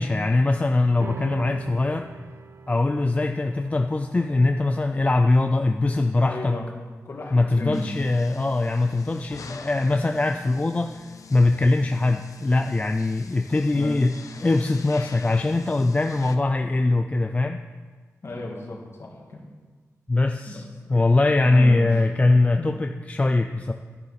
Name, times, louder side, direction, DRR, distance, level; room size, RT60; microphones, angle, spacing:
voice 1, 0.0-2.1 2.7-6.6 7.3-14.1 14.4-17.6 20.1-20.6 20.9-23.7, left 2 dB, 25° left, 5 dB, 0.4 m, -22 dB
sound 1, 1.0-7.7, right 5 dB, 45° right, 0.4 m, -44 dB
voice 2, 6.2-6.7 7.0-7.9 13.7-14.0 18.2-19.4 20.5-20.6 20.9-21.1 21.4-22.0 22.6-22.7, left 2 dB, 50° left, -2 dB, 2.4 m, -34 dB
sound 2, 7.7-16.4, left 5 dB, 75° left, 0.7 m, -46 dB
12.5 x 10.5 x 4.2 m, 1.4 s
wide cardioid pair, 155°, 6 cm